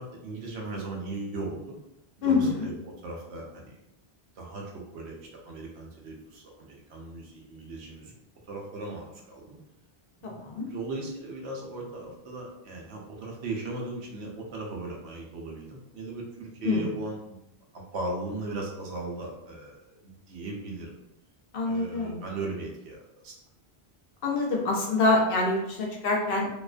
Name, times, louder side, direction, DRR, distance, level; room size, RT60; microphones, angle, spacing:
voice 1, 0.0-1.6 2.2-3.8 4.4-5.2 5.4-8.1 8.5-9.6 10.2-17.4 17.7-20.9 21.6-23.3, right 2 dB, 90° right, -1 dB, 0.9 m, -37 dB
voice 2, 2.2-2.7 10.2-10.7 16.6-16.9 21.5-22.2 24.2-26.5, left 3 dB, 65° left, 0 dB, 0.7 m, -26 dB
2.4 x 2.2 x 2.4 m, 0.86 s
omnidirectional pair, 1.1 m